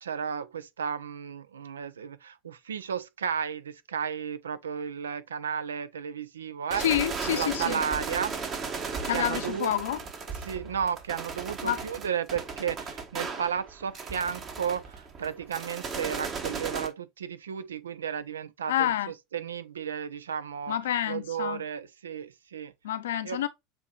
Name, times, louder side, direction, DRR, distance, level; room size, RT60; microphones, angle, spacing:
voice 1, 0.0-6.8 7.3-8.3 9.1-9.7 10.4-20.8 21.1-22.7 23.2-23.5, right 7 dB, 80° right, 0.4 m, -33 dB
sound 1, 6.7-16.9, right 5 dB, 35° right, 1.2 m, -36 dB
voice 2, 6.8-7.8 9.0-10.0 11.6-11.8 18.7-19.1 20.7-21.6 22.8-23.5, left 11 dB, 70° left, 0.5 m, -28 dB
6.9 x 2.8 x 2.4 m
figure-of-eight pair, 75°, 0 cm